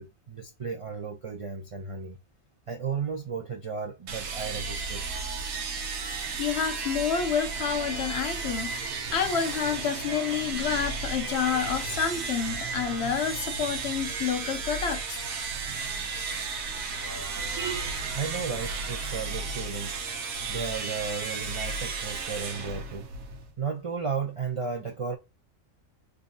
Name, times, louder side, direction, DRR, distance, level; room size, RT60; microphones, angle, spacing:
voice 1, 0.0-2.2 2.7-5.0 18.1-19.9 20.5-23.1 23.6-25.2, right 5 dB, 55° right, 0.3 m, -34 dB
sound 1, 4.1-23.5, right 4 dB, 80° right, 1.2 m, -34 dB
voice 2, 6.4-15.2, left 7 dB, 60° left, 0.9 m, -29 dB
3.6 x 2.6 x 2.6 m
omnidirectional pair, 1.4 m